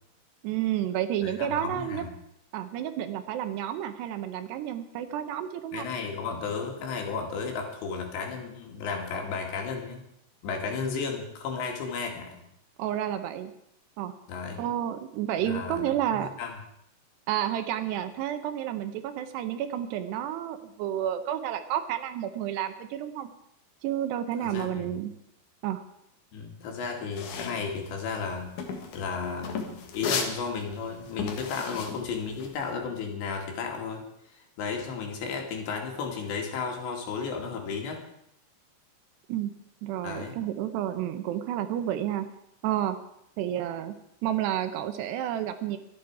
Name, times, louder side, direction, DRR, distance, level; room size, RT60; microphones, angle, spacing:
voice 1, 0.4-2.0 2.5-5.9 12.8-13.5 14.0-14.1 14.6-16.3 17.3-23.3 23.8-25.1 25.6-25.8 39.3-39.5 39.8-42.3 42.6-43.0 43.4-44.0 44.2-45.8, right 11 dB, 75° right, 9 dB, 2.9 m, -30 dB
voice 2, 1.2-2.1 5.7-10.1 10.4-12.4 14.3-14.6 15.4-16.6 24.4-24.8 26.3-28.5 28.9-34.0 34.6-38.0 40.0-40.4, left 5 dB, 75° left, 2 dB, 4.5 m, -33 dB
sound 1, 27.1-32.7, left 5 dB, 55° left, 2.5 m, -35 dB
25.0 x 8.9 x 4.8 m, 0.76 s
omnidirectional pair, 5.0 m